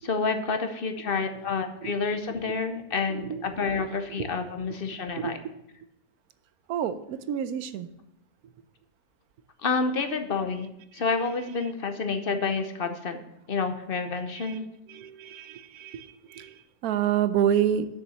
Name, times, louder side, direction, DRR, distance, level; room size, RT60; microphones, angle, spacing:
voice 1, 0.0-5.4 9.6-13.2 13.5-14.7, left 4 dB, 45° left, 7 dB, 0.8 m, -29 dB
voice 2, 5.2-5.6 6.7-7.9 14.4-14.6 14.9-17.9, right 9 dB, 75° right, 13 dB, 1.1 m, -28 dB
6.9 x 6.4 x 6.7 m, 0.82 s
omnidirectional pair, 1.7 m